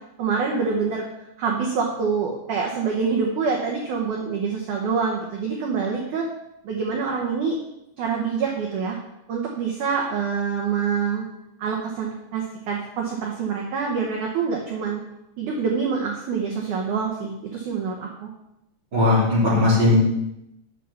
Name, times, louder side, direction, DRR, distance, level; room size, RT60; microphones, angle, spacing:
voice 1, 0.2-1.0 1.4-6.3 6.6-7.6 8.0-9.0 9.3-11.3 11.6-15.0 15.4-18.3, right 5 dB, 75° right, -1 dB, 1.8 m, -26 dB
voice 2, 18.9-19.9, left 2 dB, 25° right, -6 dB, 3.2 m, -18 dB
9.2 x 5.7 x 7.0 m, 0.85 s
omnidirectional pair, 5.2 m